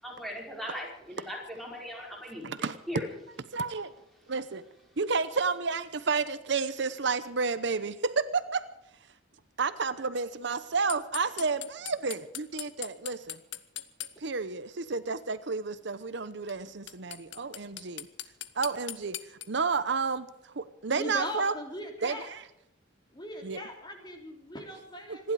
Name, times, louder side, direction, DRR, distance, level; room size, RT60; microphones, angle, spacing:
voice 1, 0.0-3.1, left 1 dB, ahead, -2 dB, 5.1 m, -39 dB
voice 2, 2.4-2.8 3.5-3.9 4.3-4.6 5.0-8.6 9.6-13.4 14.2-18.1 18.6-19.2 19.5-21.5 22.0-22.4 23.4-23.6 25.1-25.3, right 4 dB, 70° right, 13 dB, 0.9 m, -31 dB
sound 1, 10.9-14.1 16.5-16.6 16.9-19.5, left 13 dB, 75° left, 1.1 m, -38 dB
voice 3, 20.9-22.3 23.1-25.3, left 1 dB, 25° left, 3 dB, 3.1 m, -40 dB
26.0 x 11.5 x 4.9 m, 0.85 s
head